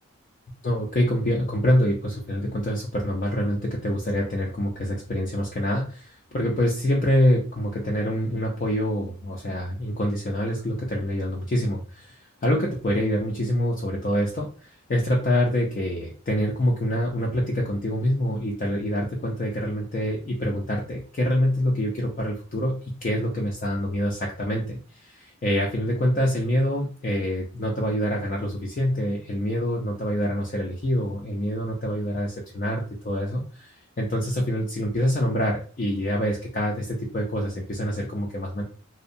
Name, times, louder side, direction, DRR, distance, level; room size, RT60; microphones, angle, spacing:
voice 1, 0.6-12.2 12.4-38.6, equal, 35° left, -2 dB, 0.4 m, -26 dB
2.6 x 2.1 x 2.5 m, 0.39 s
head